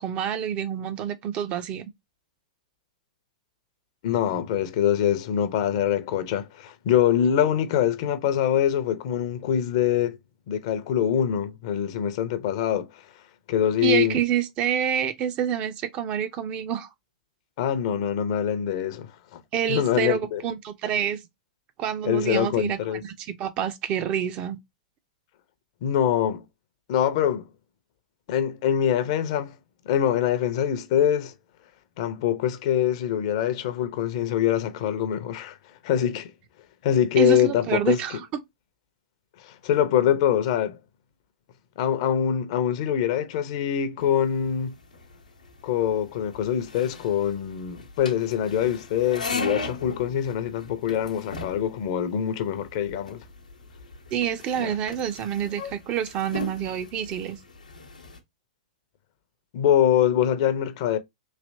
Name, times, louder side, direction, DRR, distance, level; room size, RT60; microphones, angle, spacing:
voice 1, 0.0-1.8 13.8-16.9 19.5-21.2 21.8-24.6 37.2-38.2 54.1-57.4, right 9 dB, 30° right, 0.5 m, -27 dB
voice 2, 4.0-10.2 10.5-13.0 13.5-14.2 17.6-19.4 19.7-20.4 22.0-23.0 25.8-26.4 26.9-27.5 28.3-29.5 29.9-31.3 32.0-35.6 35.8-36.3 36.8-38.0 39.4-40.8 41.8-44.7 45.6-53.2 54.6-54.7 59.5-61.0, left 10 dB, 45° left, 0.6 m, -24 dB
sound 1, 44.0-58.2, left 3 dB, 85° left, 0.8 m, -38 dB
3.2 x 2.8 x 2.6 m
figure-of-eight pair, 105°, 4 cm